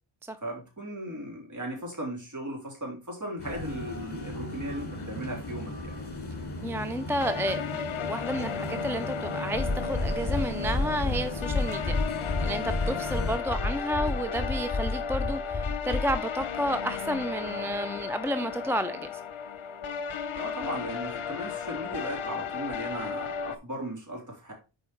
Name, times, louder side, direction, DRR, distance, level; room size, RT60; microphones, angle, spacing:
voice 1, 0.4-6.0 20.3-24.5, right 1 dB, 35° right, 3.5 m, -37 dB
sound 1, 3.4-13.4, left 1 dB, 55° left, 2.4 m, -37 dB
voice 2, 6.6-7.8 8.1-19.1, equal, 5° right, 0.4 m, -31 dB
sound 2, 7.2-23.6, left 6 dB, 70° left, 0.9 m, -35 dB
sound 3, 9.5-16.2, left 3 dB, 35° left, 4.0 m, -30 dB
7.0 x 4.8 x 4.4 m
wide cardioid pair, 110°, 49 cm